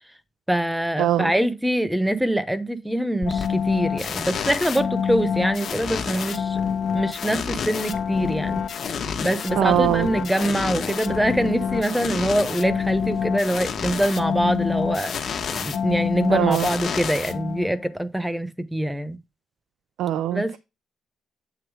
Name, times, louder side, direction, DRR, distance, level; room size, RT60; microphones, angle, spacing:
voice 1, 0.5-6.6 6.9-8.6 9.2-19.2 20.3-20.6, right 1 dB, 5° right, 0.9 m, -24 dB
voice 2, 1.0-1.3 9.6-10.1 16.3-16.7 20.0-20.6, right 12 dB, 85° right, 0.5 m, -22 dB
sound 1, 3.2-17.9, left 7 dB, 60° left, 1.1 m, -27 dB
8.1 x 2.8 x 4.8 m
cardioid pair, 90°, 0 cm